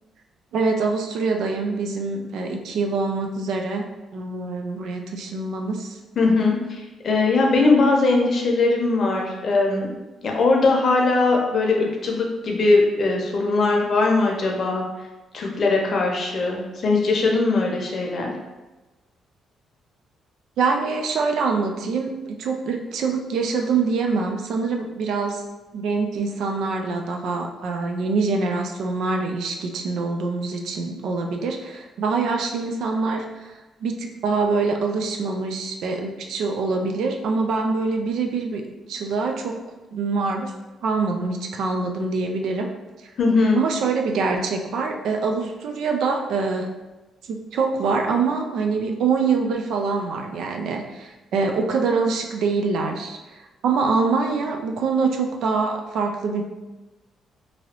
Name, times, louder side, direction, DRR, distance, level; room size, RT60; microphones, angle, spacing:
voice 1, 0.5-3.9 4.1-6.0 20.6-25.4 25.7-33.5 33.8-38.6 38.9-39.6 39.9-40.5 40.8-42.7 43.6-46.7 47.3-56.4, right 4 dB, 75° right, 3 dB, 0.4 m, -24 dB
voice 2, 6.2-9.9 10.2-14.8 15.3-18.3 43.2-43.6, left 3 dB, 50° left, 0 dB, 0.7 m, -20 dB
2.9 x 2.6 x 2.9 m, 1.1 s
cardioid pair, 90°, 0 cm